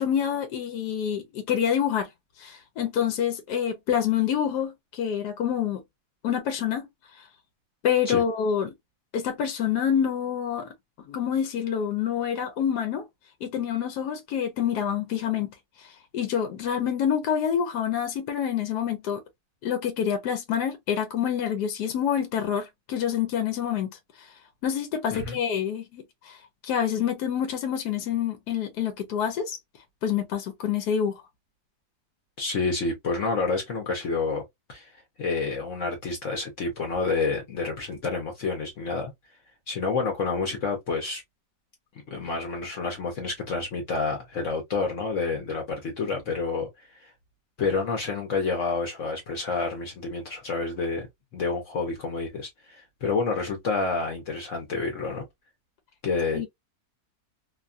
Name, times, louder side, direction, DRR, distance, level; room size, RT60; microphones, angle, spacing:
voice 1, 0.0-2.1 2.4-5.8 6.2-6.9 7.8-8.7 9.1-10.7 11.1-13.1 13.4-15.9 16.1-19.2 19.6-24.3 24.6-26.4 26.6-29.6 30.0-31.2 56.3-56.5, left 8 dB, 80° left, 1.2 m, -27 dB
voice 2, 32.4-34.4 34.7-34.9 35.2-39.1 39.7-41.2 42.1-47.1 47.6-51.1 51.3-55.2 56.0-56.4, left 4 dB, 60° left, 1.1 m, -29 dB
2.9 x 2.2 x 2.4 m
omnidirectional pair, 1.7 m